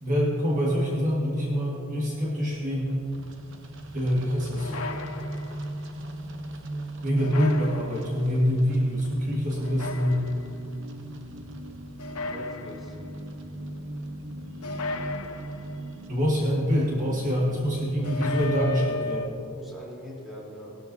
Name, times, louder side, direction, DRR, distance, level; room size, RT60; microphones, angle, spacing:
voice 1, 0.0-3.1 3.9-4.7 7.0-10.2 16.1-19.3, equal, 35° right, -4 dB, 1.7 m, -25 dB
sound 1, 2.7-19.2, right 1 dB, 55° right, 0.9 m, -39 dB
sound 2, 4.6-5.8 7.2-8.3 9.6-10.6 12.0-13.2 14.6-16.0 18.0-19.3, left 3 dB, 90° left, 0.9 m, -35 dB
voice 2, 12.1-12.9 19.6-20.8, equal, ahead, -7 dB, 3.4 m, -42 dB
19.0 x 13.0 x 2.7 m, 2.6 s
head